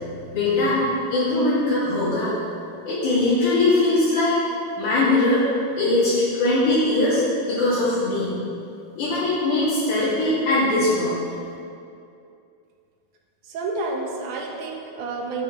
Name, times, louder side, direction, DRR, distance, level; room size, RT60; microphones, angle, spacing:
voice 1, 0.3-0.8 1.1-2.4 2.8-4.3 4.8-5.5 5.8-8.3 9.0-11.2, left 2 dB, 70° left, -12 dB, 3.5 m, -21 dB
voice 2, 13.5-15.4, right 3 dB, 75° right, 0 dB, 2.3 m, -29 dB
10.0 x 9.0 x 3.1 m, 2.5 s
omnidirectional pair, 3.8 m